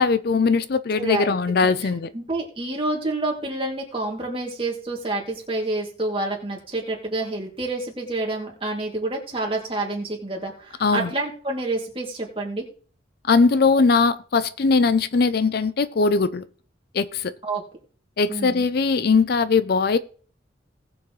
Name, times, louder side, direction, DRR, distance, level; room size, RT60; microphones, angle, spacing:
voice 1, 0.0-2.1 10.8-11.1 13.3-16.4 16.9-17.3 18.2-20.0, left 4 dB, 55° left, 0.5 m, -20 dB
voice 2, 1.0-1.3 1.6-12.7 17.4-17.6 18.3-18.6, right 2 dB, 30° right, 2.6 m, -28 dB
19.0 x 7.0 x 3.2 m
head